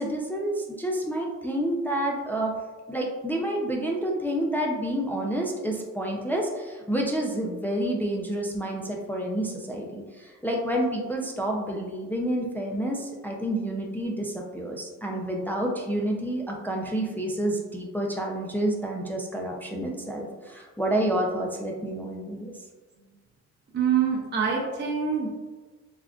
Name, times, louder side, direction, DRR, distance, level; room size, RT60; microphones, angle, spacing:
voice 1, 0.0-2.5 2.9-22.5, right 1 dB, 5° left, -1 dB, 0.3 m, -29 dB
voice 2, 23.7-25.3, right 7 dB, 35° right, -3 dB, 0.7 m, -25 dB
3.5 x 2.4 x 2.3 m, 1.3 s
cardioid pair, 90°, 30 cm